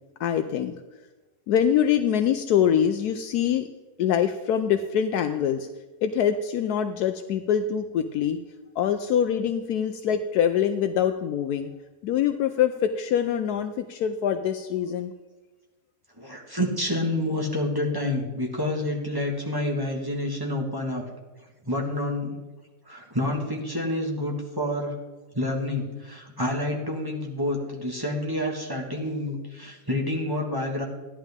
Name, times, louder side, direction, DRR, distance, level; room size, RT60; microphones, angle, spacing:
voice 1, 0.2-0.7 1.5-3.7 4.0-5.7 6.0-8.4 8.8-11.7 12.0-15.1, left 9 dB, 75° left, 7 dB, 1.1 m, -24 dB
voice 2, 16.2-21.0 21.6-22.4 22.8-24.9 25.3-30.8, left 1 dB, 15° right, -1 dB, 1.6 m, -28 dB
14.0 x 11.0 x 3.6 m, 1.2 s
omnidirectional pair, 1.7 m